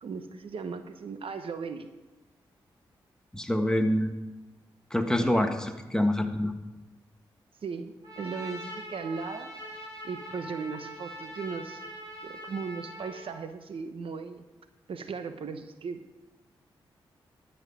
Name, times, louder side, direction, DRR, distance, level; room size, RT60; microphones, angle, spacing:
voice 1, 0.0-1.9 5.2-5.5 7.6-9.5 10.0-11.8 12.2-14.4 14.9-16.2, right 5 dB, 65° right, 9 dB, 0.9 m, -37 dB
voice 2, 3.3-4.1 4.9-5.5 5.9-6.5, left 1 dB, 5° left, 6 dB, 1.5 m, -25 dB
Trumpet, 8.0-13.3, equal, 35° right, 4.3 m, -42 dB
12.0 x 5.6 x 8.0 m, 1.1 s
supercardioid pair, 40°, 10 cm